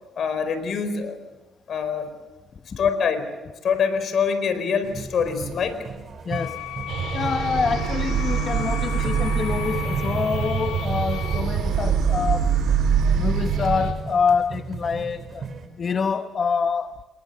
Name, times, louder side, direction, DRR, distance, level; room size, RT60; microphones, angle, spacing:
voice 1, 0.2-1.2 1.7-2.1 2.8-3.3 3.6-5.8 9.0-9.1, left 6 dB, 60° left, 4.5 m, -24 dB
sound 1, 4.8-15.7, right 5 dB, 45° right, 4.1 m, -37 dB
voice 2, 6.2-6.6 7.1-12.5 13.1-15.5 15.8-17.0, left 5 dB, 45° left, 1.0 m, -26 dB
sound 2, 6.3-11.4, left 13 dB, 85° left, 2.5 m, -36 dB
sound 3, 6.9-13.9, right 7 dB, 80° right, 4.3 m, -24 dB
28.0 x 22.5 x 6.8 m
cardioid pair, 90°, 0 cm